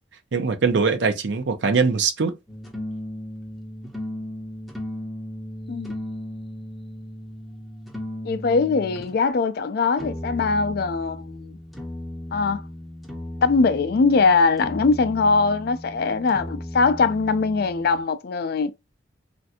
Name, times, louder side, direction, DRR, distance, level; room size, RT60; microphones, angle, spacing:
voice 1, 0.3-2.3, right 4 dB, 65° right, 0.5 m, -22 dB
sound 1, 2.5-9.1 10.0-18.0, left 1 dB, ahead, 0.5 m, -36 dB
voice 2, 8.2-11.6 12.3-12.6 13.4-18.7, left 4 dB, 50° left, 0.3 m, -21 dB
3.2 x 2.5 x 2.7 m
head